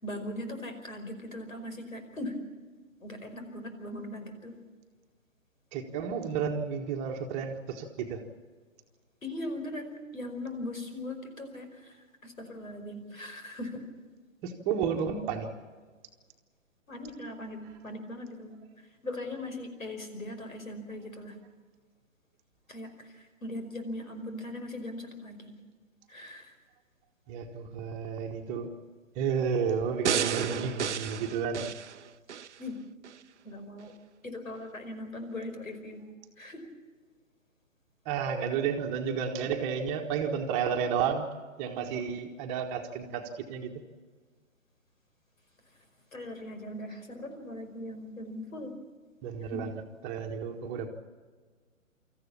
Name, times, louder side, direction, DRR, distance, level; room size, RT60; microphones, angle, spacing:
voice 1, 0.0-2.4 3.0-4.5 9.2-13.8 16.9-21.4 22.7-25.5 26.1-26.5 32.6-32.8 33.5-33.9 34.2-36.0 36.4-36.7 46.1-48.7 49.4-49.7, left 1 dB, 80° left, 7 dB, 5.2 m, -40 dB
voice 2, 5.7-8.2 14.4-15.5 27.3-28.7 29.1-31.7 38.0-41.3 41.6-43.7 49.2-49.7 50.0-50.9, right 7 dB, 15° right, 3 dB, 1.4 m, -31 dB
sound 1, 30.1-32.5 33.0-33.2, right 8 dB, 60° right, 0.7 m, -32 dB
25.5 x 14.5 x 8.6 m, 1.5 s
figure-of-eight pair, 140°, 40 cm